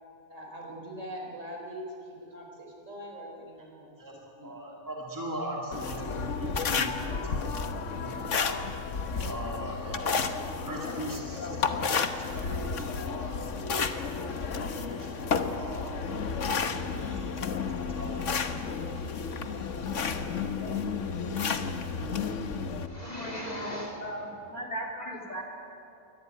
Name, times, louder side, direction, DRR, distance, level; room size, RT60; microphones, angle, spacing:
voice 1, 0.3-4.5, equal, 60° right, 0 dB, 4.8 m, -42 dB
voice 2, 4.4-8.6 9.1-10.3 10.6-12.0 12.3-13.6 13.9-16.1 16.6-18.1, right 1 dB, 15° right, -2 dB, 2.3 m, -40 dB
sound 1, 5.7-22.9, left 5 dB, 60° left, 1.4 m, -32 dB
voice 3, 22.9-25.4, equal, 30° left, 2 dB, 3.2 m, -36 dB
23.0 x 18.5 x 9.3 m, 2.9 s
omnidirectional pair, 1.4 m